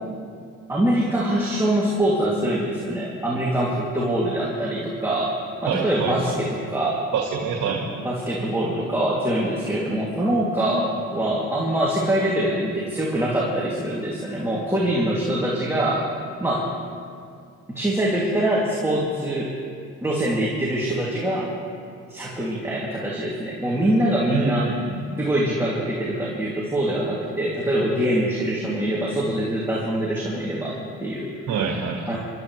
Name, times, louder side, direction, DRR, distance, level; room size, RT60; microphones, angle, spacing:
voice 1, 0.7-5.4 5.6-7.0 8.0-16.1 16.4-16.7 17.7-19.5 20.0-21.5 22.1-24.7 25.2-31.3 32.1-32.2, right 1 dB, 10° right, -6 dB, 2.7 m, -24 dB
voice 2, 5.7-6.4 7.1-7.9 24.3-25.0 31.5-32.1, right 5 dB, 85° right, -1 dB, 1.8 m, -26 dB
27.5 x 13.0 x 3.3 m, 2.3 s
cardioid pair, 90°, 30 cm